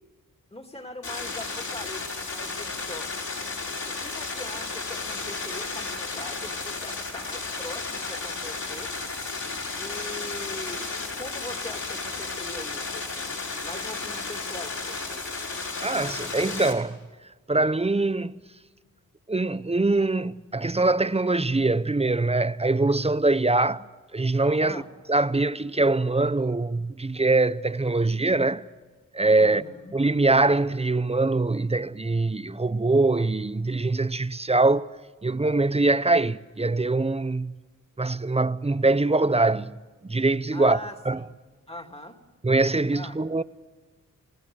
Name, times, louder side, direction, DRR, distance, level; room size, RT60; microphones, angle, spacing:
voice 1, 0.5-3.1 3.9-8.9 9.8-15.3 24.6-24.9 29.4-29.9 40.5-41.3 41.7-42.2 42.9-43.2, left 1 dB, 20° left, 2.8 m, -41 dB
sound 1, 1.0-16.7, left 3 dB, 60° left, 5.9 m, -33 dB
voice 2, 15.8-17.0 17.5-18.3 19.3-23.9 24.1-24.8 25.1-28.7 29.1-29.6 29.9-34.9 35.2-37.5 38.0-40.8 41.1-41.2 42.4-43.4, right 2 dB, 20° right, 0.7 m, -23 dB
28.5 x 17.5 x 6.4 m
cardioid pair, 60°, 33 cm